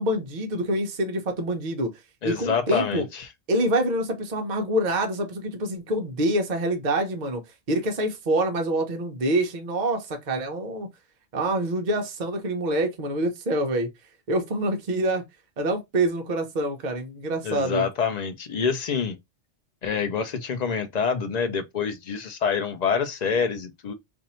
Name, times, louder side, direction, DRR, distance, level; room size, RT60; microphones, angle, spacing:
voice 1, 0.0-1.9 2.2-3.0 3.5-7.4 7.7-10.9 11.3-13.9 14.3-15.2 15.6-17.8, right 1 dB, 45° right, 0.8 m, -26 dB
voice 2, 2.2-3.3 17.4-19.2 19.8-23.9, left 6 dB, 50° left, 0.5 m, -26 dB
2.6 x 2.5 x 4.2 m
omnidirectional pair, 1.2 m